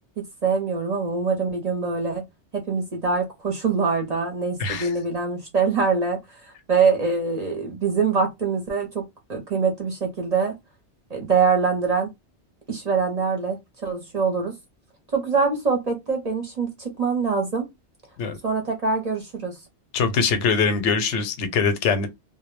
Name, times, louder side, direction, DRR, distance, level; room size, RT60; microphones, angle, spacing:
voice 1, 0.2-2.3 2.5-6.2 6.7-9.0 9.3-10.5 11.1-12.1 12.7-14.5 15.1-17.7 18.4-19.6, right 5 dB, 45° right, 0.6 m, -24 dB
voice 2, 19.9-22.1, left 5 dB, 80° left, 0.9 m, -22 dB
2.1 x 2.0 x 3.1 m
omnidirectional pair, 1.2 m